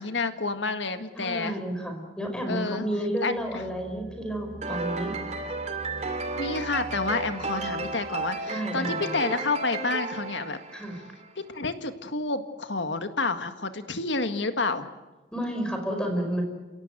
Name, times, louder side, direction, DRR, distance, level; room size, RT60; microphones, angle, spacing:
voice 1, 0.0-1.6 2.5-2.9 3.2-3.6 6.4-10.6 11.4-14.9, left 3 dB, 85° left, 8 dB, 1.8 m, -29 dB
voice 2, 1.2-5.1 8.5-9.2 10.7-11.0 15.3-16.4, right 1 dB, 5° left, 3 dB, 5.1 m, -31 dB
sound 1, 3.3-8.5, right 2 dB, 55° right, 1.7 m, -45 dB
sound 2, 4.6-11.3, right 3 dB, 40° right, 2.3 m, -33 dB
29.5 x 17.0 x 9.1 m, 1.2 s
head